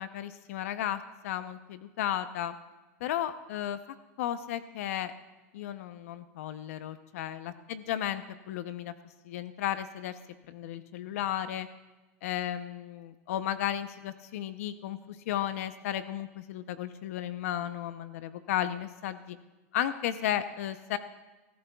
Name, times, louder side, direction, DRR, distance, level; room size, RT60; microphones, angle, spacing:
voice 1, 0.0-2.6 3.0-3.8 4.2-5.1 5.5-8.9 9.2-10.2 10.5-11.7 12.2-19.4 19.7-21.0, left 11 dB, 70° left, 12 dB, 0.6 m, -34 dB
22.5 x 13.5 x 2.3 m, 1.2 s
supercardioid pair, 140°, 8 cm